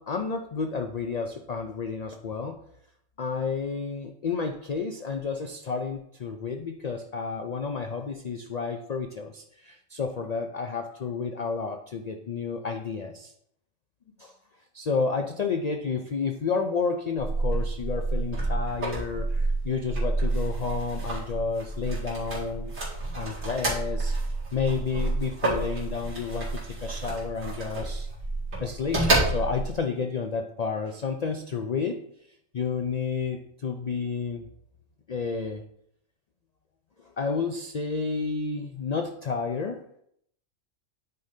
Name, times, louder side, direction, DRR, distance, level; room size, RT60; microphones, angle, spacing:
voice 1, 0.0-2.6 3.2-13.3 14.2-14.3 14.7-22.7 23.1-24.1 24.5-26.5 26.8-28.1 28.6-32.0 32.5-34.5 35.1-35.6 37.2-39.8, left 5 dB, 90° left, 5 dB, 0.3 m, -31 dB
sound 1, 17.2-29.8, right 2 dB, 80° right, 2.6 m, -29 dB
9.3 x 5.1 x 2.7 m, 0.71 s
omnidirectional pair, 1.4 m